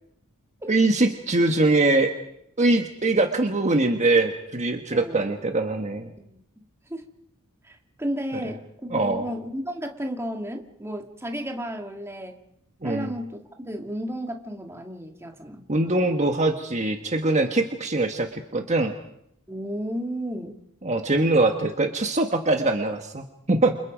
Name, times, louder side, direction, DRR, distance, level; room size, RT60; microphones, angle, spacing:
voice 1, 0.7-2.1 2.6-6.1 8.9-9.2 12.8-13.1 15.7-19.0 20.8-23.8, right 2 dB, 30° right, 4 dB, 1.5 m, -22 dB
voice 2, 4.9-5.3 6.2-6.6 6.9-7.0 7.6-12.4 12.8-15.7 19.5-20.6, equal, 10° right, 3 dB, 2.1 m, -33 dB
29.5 x 26.5 x 5.2 m, 0.76 s
head